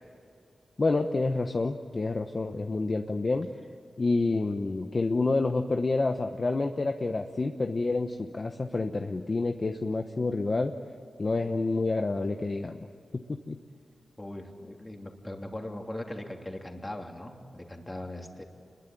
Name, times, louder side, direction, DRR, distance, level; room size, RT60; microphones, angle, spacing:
voice 1, 0.8-3.5 4.0-10.7 11.2-12.8 13.1-13.6, left 3 dB, 35° left, 5 dB, 1.0 m, -28 dB
voice 2, 14.2-18.4, left 1 dB, 20° left, 2 dB, 3.0 m, -39 dB
29.0 x 21.5 x 9.2 m, 2.4 s
wide cardioid pair, 120°, 0 cm